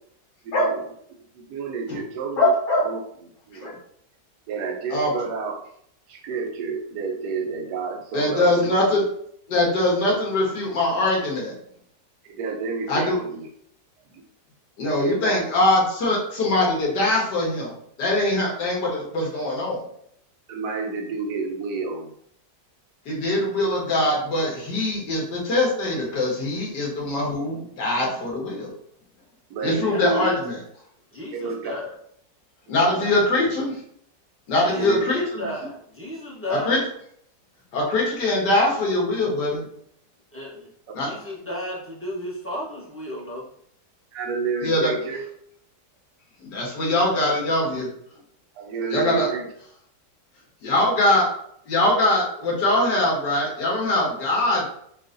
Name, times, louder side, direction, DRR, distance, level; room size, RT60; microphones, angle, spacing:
voice 1, 0.4-0.8 1.3-2.5 2.8-3.0 3.5-3.7 4.5-5.5 6.1-8.8 12.2-13.5 14.1-14.2 15.0-15.4 20.5-22.1 29.5-30.2 31.3-31.7 32.7-33.3 34.7-35.1 44.1-45.2 48.5-49.5, right 4 dB, 75° right, 2 dB, 1.3 m, -30 dB
voice 2, 2.4-2.8 3.6-3.8 4.9-5.1 8.1-9.0 9.5-11.5 12.9-13.2 14.8-17.7 18.0-19.9 23.1-28.7 29.6-30.6 32.7-33.8 34.5-35.5 36.5-36.8 37.7-39.7 40.9-41.1 44.6-44.9 46.4-47.9 48.9-49.3 50.6-51.3 51.7-54.6, left 1 dB, 80° left, -3 dB, 1.8 m, -22 dB
voice 3, 29.9-30.5 31.1-32.0 34.6-36.8 40.3-43.4, left 1 dB, 10° left, -6 dB, 0.9 m, -34 dB
6.3 x 2.5 x 2.6 m, 0.69 s
omnidirectional pair, 1.8 m